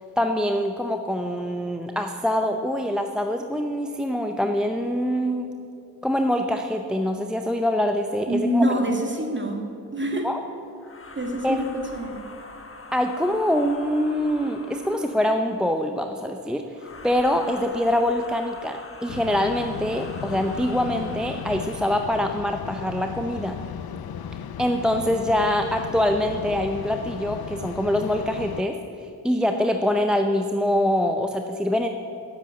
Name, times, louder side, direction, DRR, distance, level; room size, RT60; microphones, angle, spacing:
voice 1, 0.2-5.5 6.0-8.6 10.2-10.4 11.4-11.6 12.9-16.6 17.0-23.6 24.6-28.8 29.2-31.9, left 1 dB, ahead, 5 dB, 0.6 m, -24 dB
voice 2, 8.3-10.3 11.2-12.2, equal, 30° right, 2 dB, 1.9 m, -26 dB
sound 1, 10.8-15.4 16.7-22.2, left 3 dB, 35° left, 1.3 m, -44 dB
sound 2, 19.1-28.6, left 8 dB, 75° left, 0.5 m, -36 dB
8.9 x 7.4 x 8.6 m, 2.7 s
cardioid pair, 55°, 38 cm